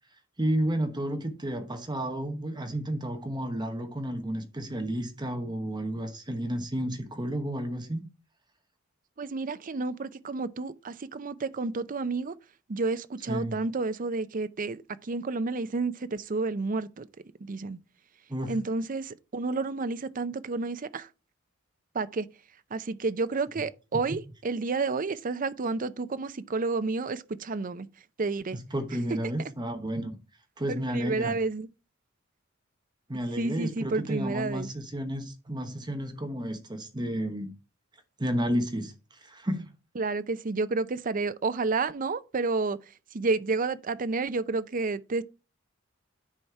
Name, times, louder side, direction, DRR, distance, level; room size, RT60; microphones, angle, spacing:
voice 1, 0.4-8.1 13.3-13.6 18.3-18.6 28.5-30.2 30.6-31.4 33.1-37.5 38.2-38.9 39.2-39.7, right 1 dB, 20° right, 1.1 m, -31 dB
voice 2, 9.2-12.3 12.7-17.1 17.4-17.8 18.5-21.1 21.9-22.3 22.7-27.9 28.2-28.6 30.9-31.7 33.4-34.7 40.0-42.8 43.1-45.2, right 3 dB, 45° right, 0.5 m, -30 dB
9.8 x 4.3 x 4.6 m
head